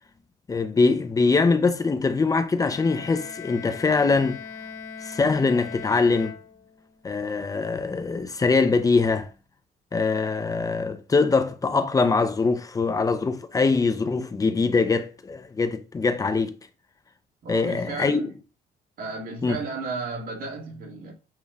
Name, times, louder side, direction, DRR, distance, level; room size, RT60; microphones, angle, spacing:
voice 1, 0.5-4.4 5.0-6.3 7.0-9.3 9.9-16.6 17.5-18.2 19.4-19.6, left 4 dB, 20° left, 0.6 m, -23 dB
Bowed string instrument, 2.6-7.0, left 6 dB, 65° left, 1.4 m, -40 dB
voice 2, 17.4-18.3 19.0-21.1, right 3 dB, 60° right, 2.3 m, -33 dB
7.3 x 3.1 x 2.3 m
cardioid pair, 110°, 17 cm